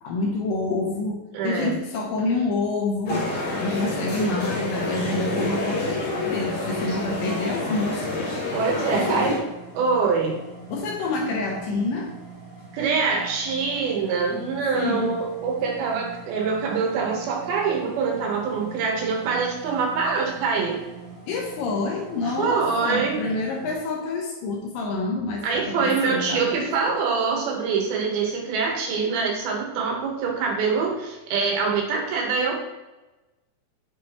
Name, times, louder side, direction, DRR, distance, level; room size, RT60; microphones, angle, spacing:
voice 1, 0.0-3.3 3.6-8.4 8.9-9.3 10.7-12.1 14.3-15.1 21.3-27.0, left 3 dB, 75° left, 1 dB, 2.3 m, -28 dB
voice 2, 1.3-1.7 8.5-9.4 9.7-10.4 12.7-20.8 22.4-23.2 25.4-32.6, right 5 dB, 85° right, 0 dB, 3.1 m, -24 dB
sound 1, 3.0-9.4, left 1 dB, 45° left, 1.3 m, -28 dB
sound 2, 9.1-23.7, right 5 dB, 30° right, 1.6 m, -43 dB
6.9 x 4.8 x 3.0 m, 1.1 s
omnidirectional pair, 4.2 m